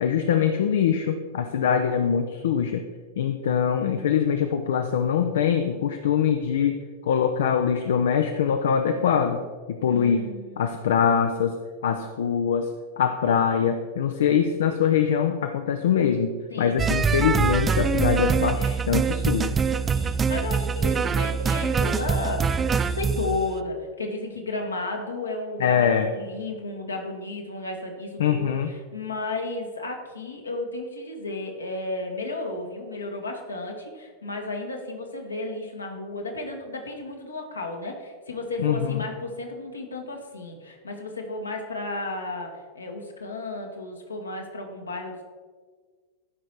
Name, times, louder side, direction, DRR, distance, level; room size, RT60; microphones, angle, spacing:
voice 1, 0.0-2.8 3.2-6.8 7.0-9.4 9.7-10.3 10.6-11.6 11.8-12.7 13.0-19.5 25.6-26.1 28.2-28.7 38.6-39.0, left 7 dB, 60° left, 7 dB, 0.5 m, -23 dB
voice 2, 9.9-10.7 16.5-16.9 19.9-45.2, left 2 dB, 75° left, 2 dB, 1.4 m, -33 dB
sound 1, 16.8-23.4, right 6 dB, 20° right, 0.4 m, -24 dB
12.5 x 5.2 x 4.5 m, 1.6 s
figure-of-eight pair, 90°, 0 cm